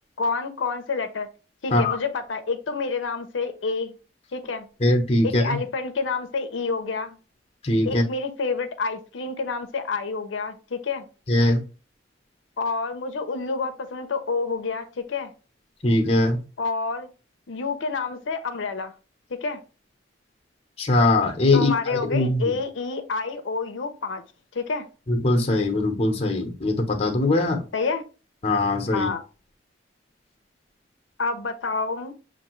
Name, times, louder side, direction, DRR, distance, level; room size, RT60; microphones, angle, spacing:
voice 1, 0.2-1.3 1.6-3.9 4.3-4.7 5.2-7.2 7.8-11.1 12.6-15.3 16.6-17.1 17.5-19.0 19.3-19.6 21.5-24.2 24.5-24.9 27.7-28.0 28.9-29.2 31.2-32.1, left 4 dB, 80° left, 0.6 m, -28 dB
voice 2, 4.8-5.6 7.6-8.0 11.3-11.6 15.8-16.4 20.8-22.5 25.1-27.6 28.4-29.1, left 2 dB, 30° left, 0.8 m, -21 dB
6.5 x 2.6 x 3.0 m
head